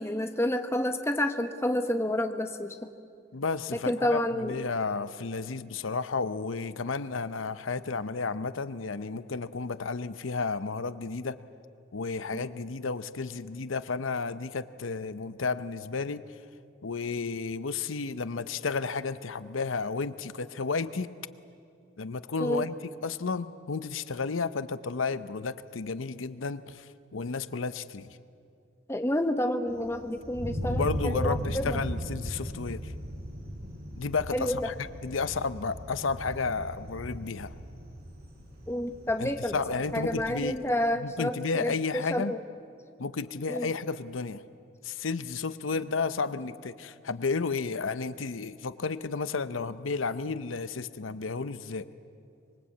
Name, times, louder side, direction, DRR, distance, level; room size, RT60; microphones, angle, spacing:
voice 1, 0.0-2.7 3.9-4.6 12.3-12.4 22.4-22.7 28.9-31.2 31.5-31.8 34.3-34.6 38.7-39.5 39.9-41.4 41.6-42.4 43.5-43.7, left 1 dB, 15° left, 6 dB, 1.2 m, -29 dB
voice 2, 3.3-11.4 11.9-16.2 16.8-21.1 22.0-28.2 30.6-32.9 34.0-37.5 39.2-40.6 41.0-42.4 43.0-44.4 44.8-51.9, left 4 dB, 85° left, 13 dB, 0.7 m, -32 dB
Thunder, 29.7-40.3, equal, 50° right, 5.6 m, -37 dB
25.0 x 22.5 x 8.5 m, 2.4 s
head